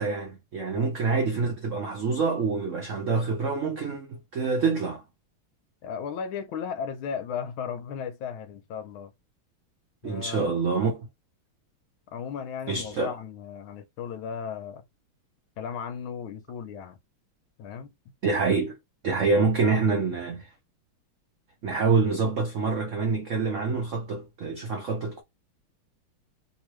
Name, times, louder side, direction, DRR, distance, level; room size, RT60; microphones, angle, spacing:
voice 1, 0.0-5.0 10.0-11.1 12.7-13.1 18.2-18.8 19.0-20.5 21.6-25.2, right 4 dB, 80° right, 0.6 m, -26 dB
voice 2, 5.8-9.1 10.0-10.4 12.1-14.8 15.6-17.0 17.6-17.9, left 7 dB, 80° left, 1.5 m, -35 dB
3.1 x 3.0 x 3.1 m
omnidirectional pair, 2.2 m